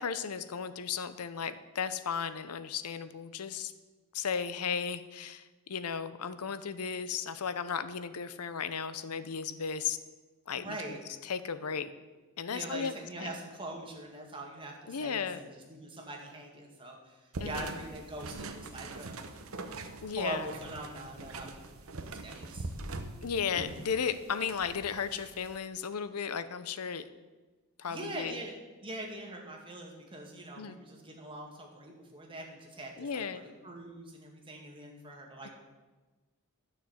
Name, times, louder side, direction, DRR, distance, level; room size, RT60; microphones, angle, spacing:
voice 1, 0.0-3.7 4.1-10.0 10.5-10.8 11.2-11.9 12.4-12.9 13.2-13.3 14.9-15.4 17.4-17.7 20.0-20.5 23.2-27.1 27.8-28.4 30.6-30.8 33.0-33.4 35.4-35.5, left 6 dB, 85° left, 12 dB, 0.7 m, -35 dB
voice 2, 10.5-11.0 12.5-19.3 20.2-22.7 27.9-28.5 28.8-35.5, right 1 dB, 25° right, 0 dB, 2.1 m, -43 dB
sound 1, 17.3-25.6, right 2 dB, 65° right, 1.0 m, -43 dB
12.0 x 6.6 x 7.9 m, 1.2 s
head